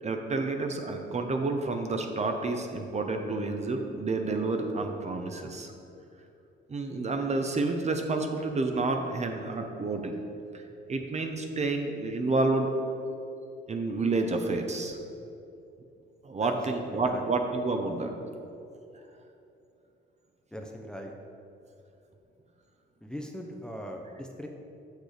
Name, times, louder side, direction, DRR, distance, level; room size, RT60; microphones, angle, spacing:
voice 1, 0.0-5.7 6.7-10.2 10.5-10.6 10.9-12.7 13.7-15.0 16.2-18.1 18.5-18.6, right 3 dB, 35° right, 4 dB, 0.8 m, -29 dB
voice 2, 16.4-17.2 20.5-21.1 23.0-24.5, equal, 5° left, 2 dB, 0.7 m, -40 dB
6.6 x 6.6 x 5.0 m, 2.7 s
cardioid pair, 90°, 20 cm